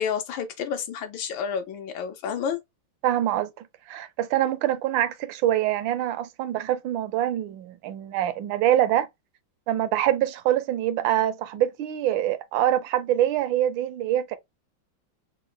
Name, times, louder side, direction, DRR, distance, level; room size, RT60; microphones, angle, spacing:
voice 1, 0.0-2.6, left 7 dB, 85° left, 1.6 m, -30 dB
voice 2, 3.0-3.5 3.9-9.1 9.7-14.4, right 12 dB, 80° right, 1.3 m, -24 dB
4.1 x 2.1 x 3.7 m
omnidirectional pair, 2.1 m